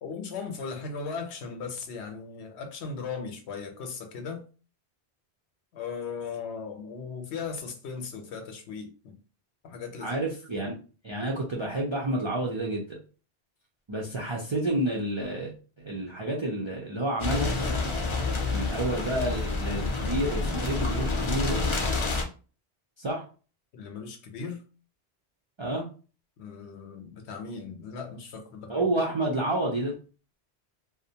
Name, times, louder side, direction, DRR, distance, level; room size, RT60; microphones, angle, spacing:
voice 1, 0.0-4.4 5.7-9.2 9.6-10.2 23.7-24.6 26.4-28.7, left 5 dB, 80° left, 0.9 m, -37 dB
voice 2, 10.0-10.8 11.0-13.0 13.9-17.5 18.5-21.6 23.0-23.2 25.6-25.9 28.7-30.0, right 1 dB, 50° right, 0.3 m, -29 dB
sound 1, 17.2-22.2, left 3 dB, 50° left, 0.3 m, -28 dB
2.5 x 2.1 x 2.7 m
omnidirectional pair, 1.1 m